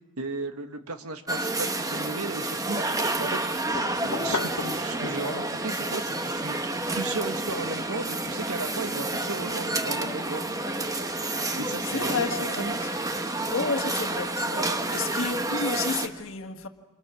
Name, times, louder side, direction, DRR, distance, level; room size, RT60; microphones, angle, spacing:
voice 1, 0.2-3.6 4.0-10.5 11.5-12.3 12.6-12.8, right 3 dB, 80° right, 1.7 m, -35 dB
sound 1, 1.3-16.1, right 2 dB, 15° right, 1.2 m, -29 dB
sound 2, 3.7-5.6 6.0-10.7, left 4 dB, 85° left, 1.0 m, -39 dB
voice 2, 11.9-12.9 13.5-16.7, left 4 dB, 60° left, 1.7 m, -31 dB
29.0 x 26.0 x 6.2 m
head